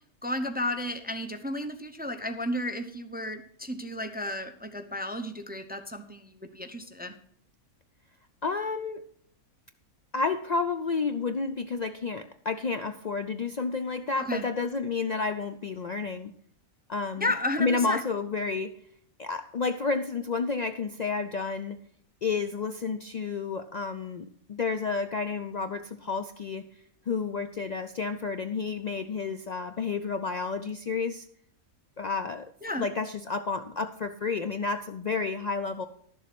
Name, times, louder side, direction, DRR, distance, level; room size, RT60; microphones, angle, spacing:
voice 1, 0.2-7.1 14.2-14.4 17.2-18.0 32.6-32.9, left 1 dB, 10° right, 7 dB, 0.5 m, -33 dB
voice 2, 8.4-9.0 10.1-16.3 16.9-17.3 17.6-18.7 19.2-21.8 22.2-26.7 27.1-31.2 32.0-32.5 32.8-35.9, left 4 dB, 85° left, 9 dB, 0.3 m, -30 dB
12.0 x 7.2 x 5.9 m, 0.64 s
omnidirectional pair, 1.5 m